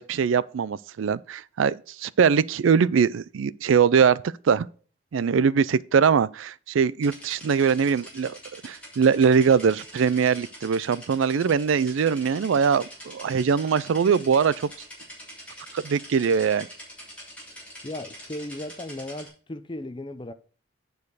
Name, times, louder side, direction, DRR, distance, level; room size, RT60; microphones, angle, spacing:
voice 1, 0.0-4.7 5.1-8.4 8.6-14.7 15.7-16.7, right 6 dB, 80° right, 0.4 m, -22 dB
sound 1, 7.0-19.3, equal, 5° left, 3.1 m, -44 dB
voice 2, 17.8-20.3, left 1 dB, 25° left, 0.6 m, -36 dB
9.6 x 4.6 x 4.8 m
head